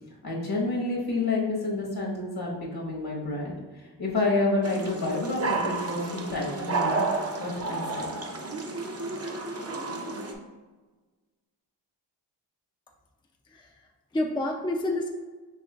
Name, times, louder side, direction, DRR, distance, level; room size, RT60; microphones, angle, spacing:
voice 1, 0.2-7.0 7.4-8.1, left 2 dB, 60° left, -3 dB, 1.3 m, -29 dB
sound 1, 4.6-10.3, right 3 dB, 35° right, 0.7 m, -31 dB
voice 2, 13.5-15.1, left 1 dB, 10° left, 1 dB, 0.5 m, -30 dB
6.2 x 3.0 x 2.4 m, 1.3 s
cardioid pair, 45°, 42 cm